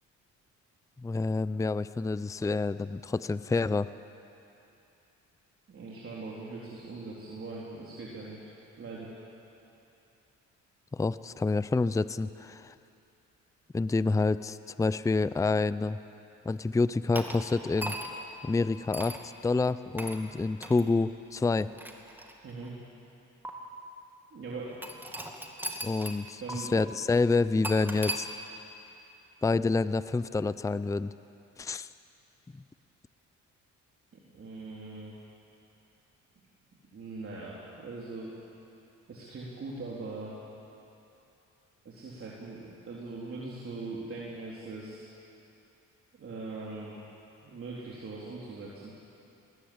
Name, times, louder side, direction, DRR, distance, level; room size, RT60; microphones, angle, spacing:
voice 1, 1.0-3.9 10.9-12.7 13.7-16.0 16.5-18.0 18.4-19.2 19.4-21.7 25.8-28.3 29.4-31.1 31.6-31.9 32.5-32.6, left 3 dB, 10° left, 15 dB, 0.5 m, -28 dB
voice 2, 5.7-8.5 8.8-9.1 22.4-22.7 24.3-25.0 26.4-26.9 34.1-35.1 36.9-38.3 39.1-40.4 41.8-45.1 46.2-47.0 47.4-48.9, right 3 dB, 45° right, -6 dB, 3.9 m, -41 dB
sound 1, 17.2-18.3 18.9-19.2 20.0-20.2 20.6-20.8 21.6-22.7 23.5-23.6 24.8-26.2 26.5-26.6 27.6-28.2, right 1 dB, 5° right, 2.4 m, -37 dB
20.5 x 20.0 x 8.7 m, 2.8 s
cardioid pair, 90°, 30 cm